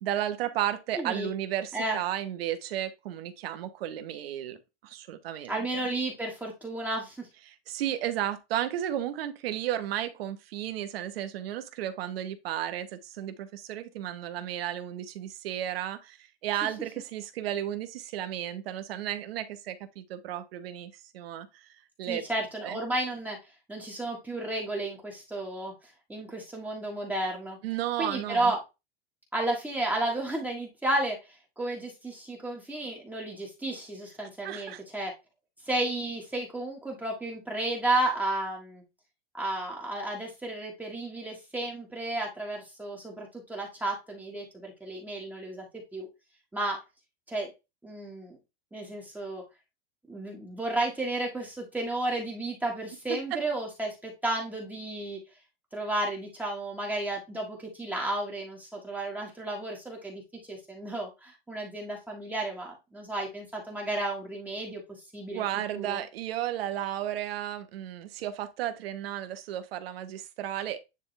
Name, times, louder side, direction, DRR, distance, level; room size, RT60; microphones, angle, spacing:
voice 1, 0.0-5.8 7.5-21.7 22.0-22.2 22.6-22.8 27.6-28.5 34.4-34.8 53.1-53.4 65.3-70.8, right 12 dB, 75° right, 1.2 m, -33 dB
voice 2, 1.0-1.3 1.7-2.0 5.5-7.3 22.1-23.4 23.7-27.6 28.0-28.6 29.3-35.1 35.6-38.8 39.3-45.7 45.9-46.1 46.5-46.8 47.3-47.5 47.8-48.4 48.7-49.4 50.1-55.2 55.7-60.2 60.5-64.8 65.1-65.4 65.7-66.0, right 2 dB, 5° right, 1.6 m, -32 dB
9.9 x 3.5 x 3.3 m
supercardioid pair, 155°, 30 cm